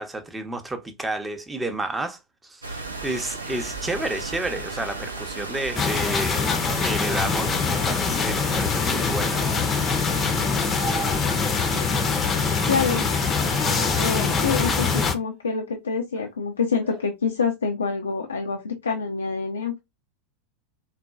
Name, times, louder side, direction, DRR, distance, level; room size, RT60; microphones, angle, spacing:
voice 1, 0.0-6.5 6.8-9.4, right 2 dB, 15° right, 0.6 m, -31 dB
sound 1, 2.6-15.1, right 3 dB, 85° right, 0.5 m, -34 dB
sound 2, 5.7-15.1, left 5 dB, 25° left, 0.6 m, -24 dB
sound 3, 5.9-6.4 9.3-9.7 10.6-11.7 13.3-14.2 14.6-15.1 16.8-17.0, right 3 dB, 40° right, 0.9 m, -38 dB
voice 2, 12.7-13.1 14.0-19.8, left 5 dB, 80° left, 0.4 m, -26 dB
4.0 x 2.2 x 2.3 m
figure-of-eight pair, 85°, 0 cm